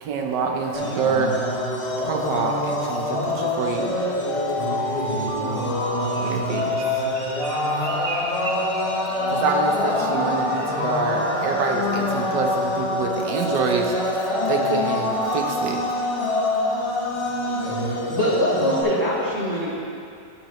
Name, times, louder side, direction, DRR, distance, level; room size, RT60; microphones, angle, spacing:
voice 1, 0.0-1.4 1.9-4.0 5.0-5.8 6.2-6.8 9.3-13.9 14.5-15.8, right 5 dB, 75° right, 2 dB, 1.4 m, -27 dB
sound 1, 0.7-18.8, left 1 dB, 30° left, 0.6 m, -26 dB
Alarm, 3.6-7.7 8.3-12.7 13.3-17.1, left 1 dB, 55° left, 1.0 m, -31 dB
voice 2, 5.5-6.5 9.1-9.4 17.2-18.2, left 2 dB, 80° left, -6 dB, 2.2 m, -40 dB
Bird, 5.5-9.6 9.8-10.2 10.5-10.8 11.2-11.6 12.0-12.1, right 2 dB, 45° right, 1.0 m, -37 dB
voice 3, 18.1-19.7, equal, 15° right, -8 dB, 1.3 m, -23 dB
11.5 x 6.0 x 3.0 m, 2.6 s
omnidirectional pair, 1.9 m